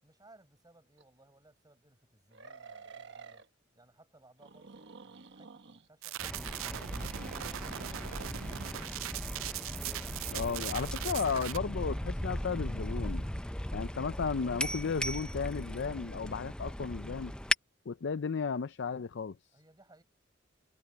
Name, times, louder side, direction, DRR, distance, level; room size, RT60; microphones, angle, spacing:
voice 1, 0.0-3.5 3.7-8.0 19.5-20.0, right 2 dB, 20° right, 7.0 m, -62 dB
sound 1, 1.0-1.1 2.3-3.5 4.4-5.9 6.9-8.2, right 4 dB, 65° right, 1.3 m, -50 dB
sound 2, 6.0-11.6, right 13 dB, 90° right, 0.4 m, -40 dB
sound 3, 6.2-17.5, left 1 dB, 5° left, 0.6 m, -37 dB
voice 2, 10.3-13.3 13.7-17.3 17.9-19.4, left 5 dB, 60° left, 0.5 m, -34 dB
head